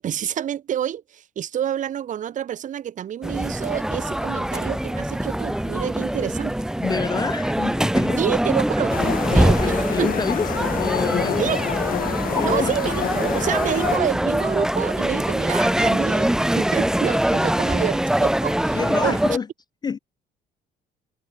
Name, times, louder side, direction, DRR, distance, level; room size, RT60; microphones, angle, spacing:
voice 1, 0.0-6.5 8.2-9.0 9.3-10.1 11.4-11.7 12.4-19.2, right 10 dB, 50° right, 1.2 m, -28 dB
sound 1, 3.2-19.4, right 1 dB, 5° right, 1.1 m, -23 dB
voice 2, 6.8-8.4 9.6-11.6 12.3-12.8 18.7-19.5 19.8-20.0, left 6 dB, 25° left, 0.4 m, -28 dB
sound 2, 8.9-14.0, left 11 dB, 55° left, 1.4 m, -28 dB
cardioid pair, 110°, 17 cm